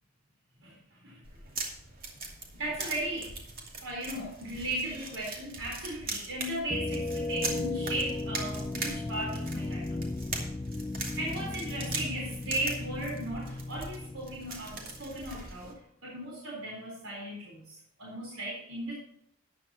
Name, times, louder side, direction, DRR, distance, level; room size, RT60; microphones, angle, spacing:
sound 1, 1.2-15.7, right 3 dB, 45° right, 2.6 m, -41 dB
voice 1, 2.6-3.3 3.8-10.0 11.2-15.7 16.0-17.6 18.0-18.9, right 1 dB, 75° right, -3 dB, 4.1 m, -36 dB
sound 2, 6.7-15.4, left 2 dB, 15° left, 0.3 m, -36 dB
13.5 x 10.5 x 2.9 m, 0.73 s
head